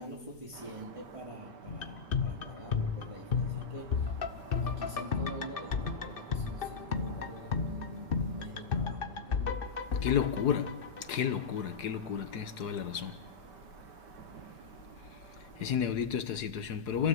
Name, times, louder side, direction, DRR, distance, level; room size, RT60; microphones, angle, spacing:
voice 1, 0.0-4.1 4.6-9.6, right 1 dB, 20° right, 3.2 m, -46 dB
sound 1, 0.5-15.8, right 7 dB, 85° right, 1.9 m, -51 dB
sound 2, 1.7-11.6 11.9-12.0, left 5 dB, 40° left, 0.9 m, -34 dB
voice 2, 10.0-10.8 11.1-13.2 15.1-17.1, left 8 dB, 70° left, 1.7 m, -32 dB
28.5 x 15.5 x 7.8 m
omnidirectional pair, 1.8 m